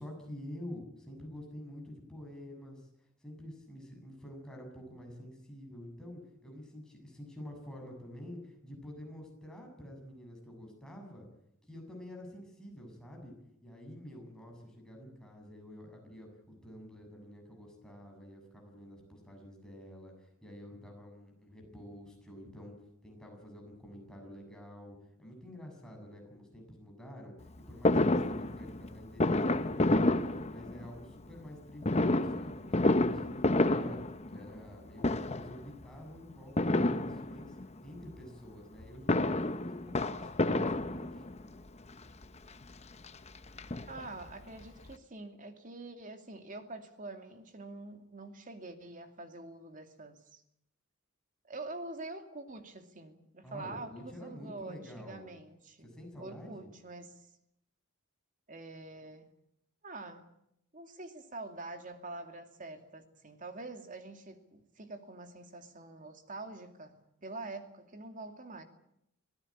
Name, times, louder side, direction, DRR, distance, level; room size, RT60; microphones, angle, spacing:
voice 1, 0.0-2.9 3.2-11.3 11.6-13.3 13.6-22.7 23.0-30.2 30.5-34.0 34.3-37.6 37.8-41.3 53.4-55.3 55.8-56.7, left 1 dB, 5° left, 0 dB, 7.4 m, -48 dB
Fireworks, 27.9-31.0 31.8-34.7 35.0-35.6 36.6-37.7 38.8-41.5 42.2-42.3 42.6-42.7 43.0-44.3 44.6-44.7 44.9-45.0, left 2 dB, 30° left, 0.9 m, -29 dB
voice 2, 43.9-50.4 51.4-55.9 56.2-57.1 58.5-59.3 59.8-60.3 60.7-68.6, right 2 dB, 40° right, 6 dB, 2.6 m, -45 dB
25.0 x 17.5 x 8.7 m, 0.78 s
head